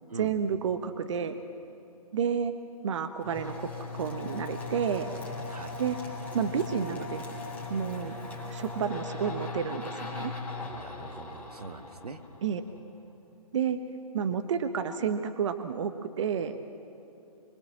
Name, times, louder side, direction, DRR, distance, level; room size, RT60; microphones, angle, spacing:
voice 1, 0.1-1.4 2.1-2.5 2.8-5.1 5.8-6.0 6.3-7.2 7.7-8.1 8.5-10.3 12.4-12.6 13.5-13.8 14.1-15.9 16.2-16.6, right 7 dB, 50° right, 9 dB, 1.2 m, -30 dB
sound 1, 3.2-12.8, left 3 dB, 5° left, 3.6 m, -39 dB
voice 2, 10.7-12.2, right 4 dB, 80° right, 9 dB, 1.7 m, -43 dB
25.5 x 23.0 x 7.5 m, 2.9 s
figure-of-eight pair, 140°, 19 cm